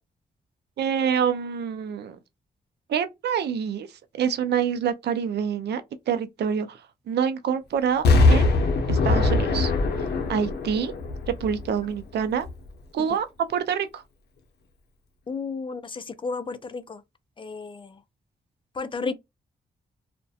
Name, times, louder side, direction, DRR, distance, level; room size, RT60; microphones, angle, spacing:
voice 1, 0.8-2.2 2.9-3.9 4.1-5.8 6.1-6.8 7.1-8.5 8.9-9.7 10.0-10.9 11.3-12.5 12.9-14.0, right 7 dB, 90° right, 0.4 m, -26 dB
Explosion, 8.0-12.0 12.4-12.5, left 3 dB, 85° left, 0.6 m, -21 dB
voice 2, 15.3-17.0 17.4-18.0 18.8-19.1, left 4 dB, 30° left, 0.4 m, -32 dB
2.3 x 2.1 x 2.6 m
cardioid pair, 75°, 17 cm